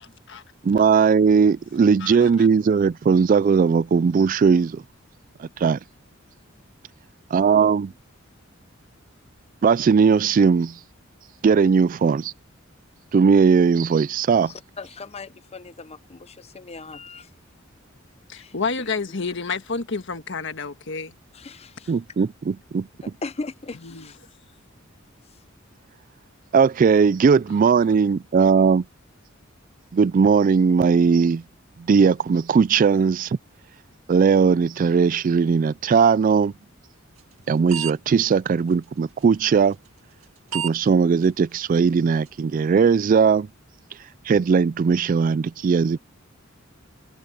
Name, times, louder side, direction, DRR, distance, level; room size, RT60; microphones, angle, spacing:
voice 1, 0.6-4.8 5.4-5.8 7.3-7.9 9.6-10.8 11.4-12.3 13.1-14.5 21.9-22.9 26.5-28.8 29.9-31.4 31.9-33.4 34.1-36.5 37.5-39.8 40.5-43.5 44.3-46.0, right 5 dB, 40° right, 0.3 m, -18 dB
voice 2, 2.0-2.5 18.3-21.1 23.9-24.1, left 4 dB, 60° left, 1.5 m, -29 dB
voice 3, 14.4-17.3 18.3-18.9 21.3-22.3 23.0-24.2 25.3-25.4, left 3 dB, 30° left, 0.6 m, -39 dB
sound 1, 37.2-37.4 37.7-37.9 38.2-38.3 39.2-39.4 40.2-40.3 40.5-40.8 41.2-41.3 41.8-41.9 42.3-42.4, right 9 dB, 85° right, 2.1 m, -29 dB
head